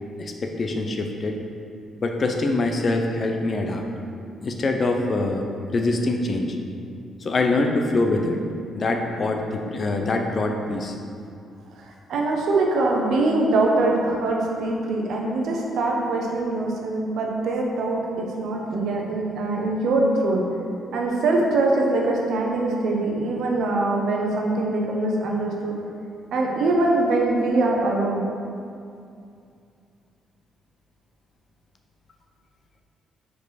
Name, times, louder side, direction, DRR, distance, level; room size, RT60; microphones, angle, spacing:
voice 1, 0.2-1.4 2.0-3.8 4.4-5.5 5.7-6.6 7.2-8.4 8.8-11.0, left 2 dB, 40° left, 3 dB, 0.6 m, -24 dB
voice 2, 12.1-20.5 20.9-25.8 26.3-28.3, right 2 dB, 75° right, -1 dB, 0.9 m, -23 dB
4.8 x 4.8 x 4.1 m, 2.4 s
cardioid pair, 90°, 0 cm